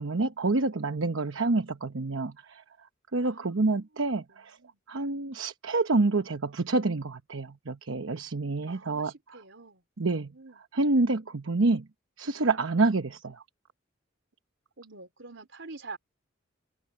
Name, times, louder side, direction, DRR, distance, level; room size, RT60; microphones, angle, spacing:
voice 1, 0.0-2.6 3.1-4.6 4.9-9.1 10.0-10.3 10.7-11.9 12.2-13.4, right 3 dB, 90° right, 1.0 m, -27 dB
voice 2, 3.2-3.6 4.0-4.8 8.7-10.6 14.8-16.0, right 3 dB, 70° right, 3.7 m, -47 dB
head